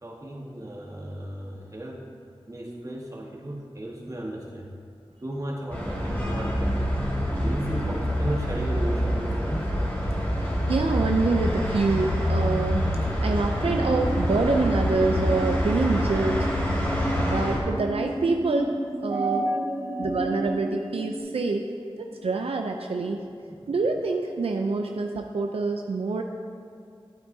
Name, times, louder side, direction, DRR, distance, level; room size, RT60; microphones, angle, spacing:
voice 1, 0.0-2.0 2.5-4.7 5.2-6.8 7.4-9.6 19.1-20.3 23.5-23.6, right 1 dB, 35° right, -3 dB, 1.7 m, -33 dB
sound 1, 5.7-17.6, equal, 20° left, 2.2 m, -26 dB
voice 2, 10.7-12.9 13.2-16.6 17.2-19.4 20.0-21.7 22.0-23.2 23.7-26.2, right 3 dB, 90° right, 3 dB, 0.5 m, -26 dB
sound 2, 13.6-21.2, right 1 dB, 15° right, 1.9 m, -33 dB
11.5 x 8.9 x 2.7 m, 2.4 s
wide cardioid pair, 55°, 10 cm